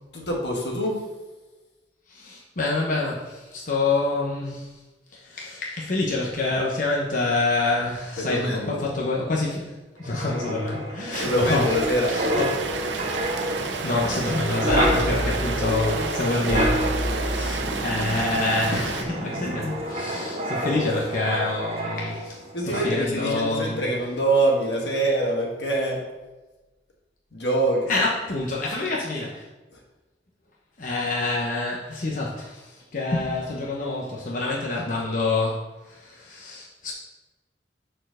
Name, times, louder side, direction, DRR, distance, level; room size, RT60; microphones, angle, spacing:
voice 1, 0.1-1.1 8.2-8.8 11.2-12.2 22.5-26.1 27.3-27.9 29.7-29.8, right 1 dB, 75° left, -1 dB, 1.7 m, -25 dB
voice 2, 2.1-4.7 5.1-11.7 12.0-12.5 13.6-16.9 17.2-22.4 22.8-23.8 27.9-29.4 30.8-36.9, left 2 dB, 45° left, -4 dB, 1.0 m, -27 dB
Wind, 10.0-22.4 22.7-23.0, equal, 35° right, 1.1 m, -28 dB
Rain, 11.1-19.0, right 4 dB, 85° right, 0.8 m, -31 dB
6.5 x 4.6 x 6.3 m, 1.2 s
head